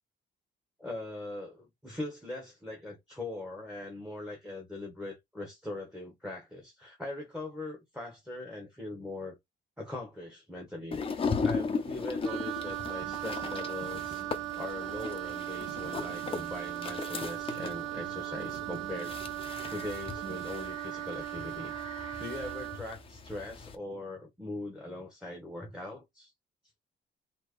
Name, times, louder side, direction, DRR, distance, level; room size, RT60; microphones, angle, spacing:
voice 1, 0.8-9.4 9.8-11.0 11.4-14.3 14.6-19.2 19.7-21.7 22.2-26.3, left 2 dB, 5° right, 1.2 m, -41 dB
sound 1, 10.9-23.7, left 5 dB, 25° left, 0.7 m, -38 dB
sound 2, 11.4-20.5, right 4 dB, 65° right, 1.3 m, -50 dB
Wind instrument woodwind instrument, 12.2-22.9, right 17 dB, 90° right, 0.5 m, -38 dB
4.5 x 2.9 x 3.1 m
cardioid pair, 150°, 20 cm